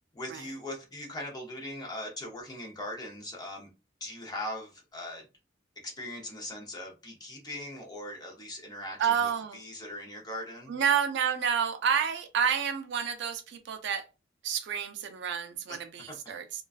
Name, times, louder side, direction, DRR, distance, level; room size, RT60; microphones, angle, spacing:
voice 1, 0.1-3.7 4.0-5.3 5.8-10.7 15.7-15.8 16.1-16.2, left 1 dB, 20° left, 0.7 m, -40 dB
voice 2, 9.0-9.6 10.7-14.0 14.4-16.4, right 7 dB, 65° right, 0.4 m, -29 dB
2.3 x 2.3 x 2.3 m
head